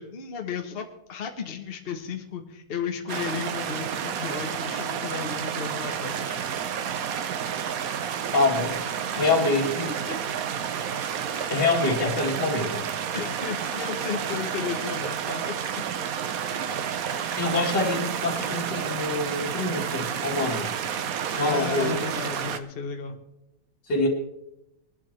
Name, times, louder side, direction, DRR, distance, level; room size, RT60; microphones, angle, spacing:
voice 1, 0.0-6.4 9.1-9.7 10.1-10.2 11.3-11.6 13.1-15.5 16.5-16.8 21.3-23.2, left 6 dB, 40° left, 4 dB, 1.2 m, -34 dB
sound 1, 3.1-22.6, right 8 dB, 60° right, 1.1 m, -30 dB
voice 2, 8.3-8.8 9.2-9.9 11.5-12.9 17.4-20.7 21.3-22.0 23.9-24.1, left 2 dB, 70° left, -2 dB, 2.5 m, -25 dB
21.0 x 11.5 x 3.3 m, 0.84 s
omnidirectional pair, 1.9 m